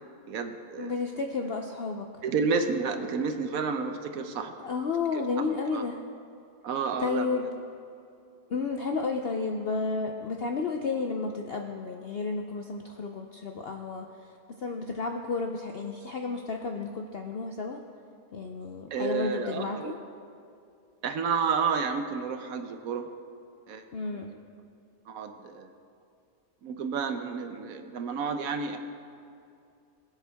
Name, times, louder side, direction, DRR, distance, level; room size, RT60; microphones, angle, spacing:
voice 1, 0.3-0.9 2.2-4.5 5.1-5.9 6.6-7.4 18.9-20.0 21.0-23.1 23.7-24.4 25.1-25.7 26.6-28.8, right 5 dB, 65° right, 7 dB, 1.1 m, -31 dB
voice 2, 0.8-2.1 4.6-6.0 7.0-7.5 8.5-14.3 14.6-17.8 18.3-19.9 23.9-24.3, left 4 dB, 65° left, 3 dB, 0.6 m, -32 dB
21.0 x 8.1 x 3.4 m, 2.5 s
omnidirectional pair, 1.7 m